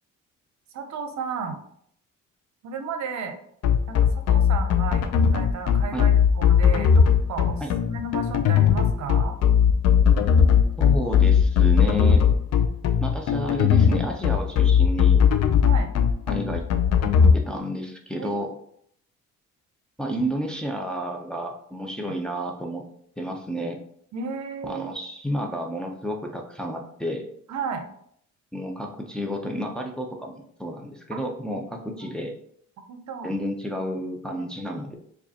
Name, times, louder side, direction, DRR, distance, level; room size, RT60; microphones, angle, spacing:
voice 1, 0.7-1.6 2.6-3.4 3.9-5.0 5.3-9.4 15.6-15.9 18.2-18.5 24.1-24.8 27.5-27.9 31.1-31.2 32.9-33.4, right 5 dB, 65° right, 6 dB, 0.6 m, -33 dB
sound 1, 3.6-17.3, left 7 dB, 55° left, 0.5 m, -18 dB
voice 2, 10.8-12.2 13.0-15.2 16.3-16.7 17.3-18.6 20.0-22.8 23.2-23.8 24.6-27.2 28.5-32.3 33.2-35.0, equal, 5° left, 1 dB, 0.5 m, -31 dB
4.7 x 2.4 x 2.8 m, 0.67 s
cardioid pair, 90°, 30 cm